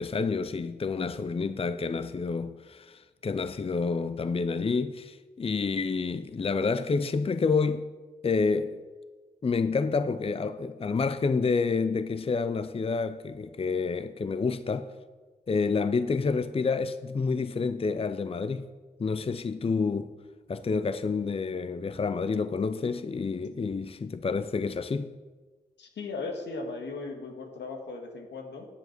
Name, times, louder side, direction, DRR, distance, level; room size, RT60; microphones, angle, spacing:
voice 1, 0.0-7.8 8.2-8.8 9.4-14.9 15.5-18.7 19.0-20.1 20.5-25.1, left 4 dB, 35° left, 0.5 m, -28 dB
voice 2, 25.8-28.7, left 3 dB, 80° left, 1.7 m, -37 dB
9.7 x 7.9 x 5.9 m
supercardioid pair, 40°, 18 cm